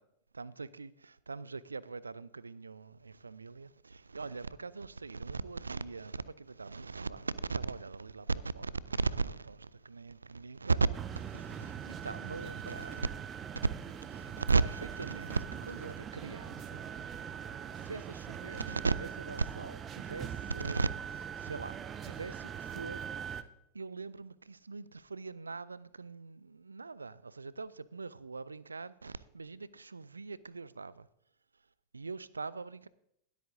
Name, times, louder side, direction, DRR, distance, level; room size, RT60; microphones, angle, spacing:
voice 1, 0.3-13.1 13.8-16.9 17.8-23.4 23.7-31.1 31.9-32.9, right 4 dB, 75° right, 0.3 m, -38 dB
sound 1, 10.9-23.4, right 8 dB, 25° right, 0.5 m, -42 dB
21.5 x 8.2 x 2.6 m
figure-of-eight pair, 90°, 0 cm